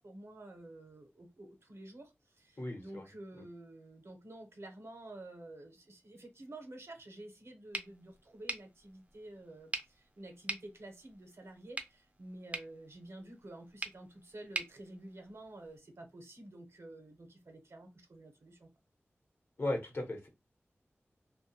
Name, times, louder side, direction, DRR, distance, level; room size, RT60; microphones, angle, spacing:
voice 1, 0.0-18.7, right 1 dB, 70° right, 0.7 m, -50 dB
voice 2, 2.6-3.0 19.6-20.3, left 1 dB, 55° left, 1.0 m, -36 dB
sound 1, 7.7-15.8, right 2 dB, 30° right, 0.5 m, -45 dB
2.5 x 2.2 x 2.7 m
wide cardioid pair, 50°, 5 cm